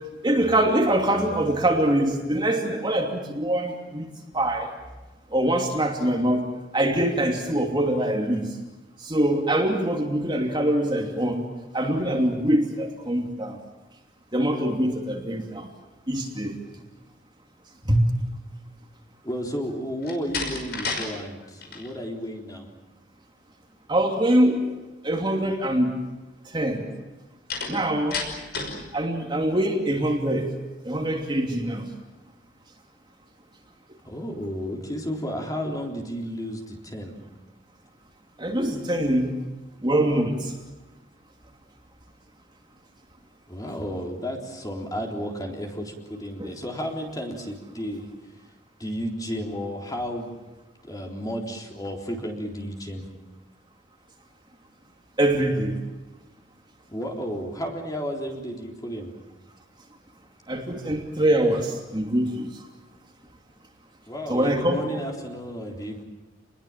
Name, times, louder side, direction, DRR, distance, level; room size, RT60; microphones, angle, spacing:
voice 1, 0.2-4.1 4.3-4.7 5.3-6.5 6.7-8.6 9.0-11.5 11.7-13.6 14.3-15.7 16.1-16.6 17.9-18.0 23.9-24.7 25.0-25.9 26.5-26.9 27.7-28.2 28.9-30.5 30.8-31.9 38.4-39.3 39.8-40.5 46.4-46.5 55.2-55.8 60.5-62.5 64.3-64.8, right 1 dB, 25° right, 1 dB, 2.8 m, -23 dB
voice 2, 19.2-22.7 34.0-37.2 43.5-48.1 48.8-50.4 50.8-53.1 56.9-59.1 64.1-66.0, equal, 20° left, 1 dB, 3.8 m, -32 dB
Slam, 20.0-21.1 21.4-21.9 27.5-28.8, left 4 dB, 60° left, 5.7 m, -31 dB
29.0 x 21.5 x 7.5 m, 1.1 s
head